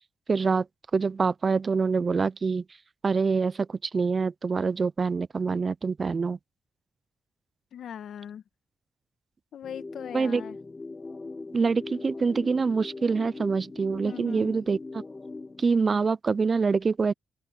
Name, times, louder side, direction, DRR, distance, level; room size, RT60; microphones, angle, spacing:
voice 1, 0.3-0.7 0.9-2.6 3.0-6.4 10.1-10.4 11.5-15.0 15.6-17.1, right 4 dB, 45° right, 0.5 m, -25 dB
voice 2, 7.7-8.4 9.5-10.6 14.0-14.6, left 9 dB, 70° left, 1.7 m, -40 dB
sound 1, 9.6-15.6, left 3 dB, 30° left, 0.6 m, -40 dB
open air
supercardioid pair, 50°, 0 cm